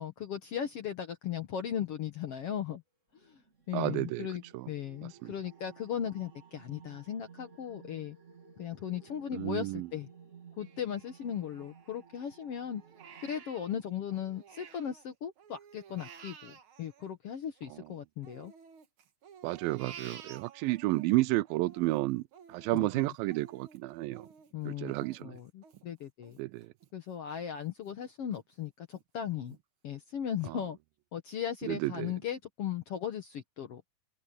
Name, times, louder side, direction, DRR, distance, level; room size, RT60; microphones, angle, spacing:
voice 1, 0.0-2.8 3.2-3.4 3.7-8.2 8.6-10.1 10.6-12.8 13.2-18.5 22.7-23.1 24.5-24.9 25.2-26.4 26.9-29.6 29.8-30.8 31.1-33.8, left 9 dB, 65° left, 1.5 m, -37 dB
sound 1, 3.2-13.3, right 6 dB, 25° right, 1.9 m, -56 dB
voice 2, 3.7-4.3 4.5-4.7 5.2-5.3 9.3-9.9 19.4-22.2 22.5-24.3 24.7-25.4 26.4-26.7 31.6-32.1, right 19 dB, 85° right, 2.3 m, -31 dB
Crying sobbing, 10.6-12.3 12.7-15.0 15.4-17.8 18.2-21.0 21.4-26.9 27.3-27.4 27.9-28.4 28.9-29.0 29.5-29.6, right 7 dB, 55° right, 1.5 m, -53 dB
omnidirectional pair, 4.2 m